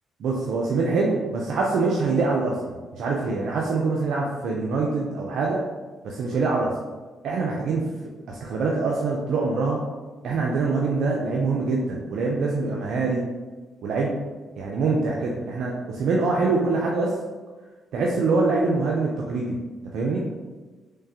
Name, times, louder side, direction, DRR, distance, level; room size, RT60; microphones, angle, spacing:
voice 1, 0.2-2.5 2.9-5.6 6.0-6.7 7.2-7.9 8.3-9.8 10.2-13.2 13.8-14.1 14.6-17.1 17.9-19.6 19.9-20.2, right 3 dB, 70° right, -2 dB, 0.5 m, -24 dB
3.6 x 3.3 x 2.8 m, 1.3 s
cardioid pair, 90°, 0 cm